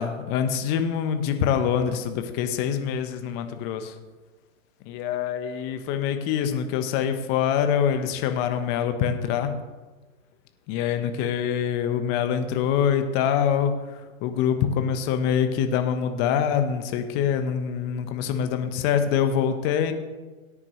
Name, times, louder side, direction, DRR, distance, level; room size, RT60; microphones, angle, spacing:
voice 1, 0.0-3.9 4.9-9.5 10.7-13.7 14.2-19.9, left 8 dB, 25° left, 8 dB, 1.0 m, -25 dB
17.5 x 9.8 x 3.1 m, 1.3 s
figure-of-eight pair, 125°, 40 cm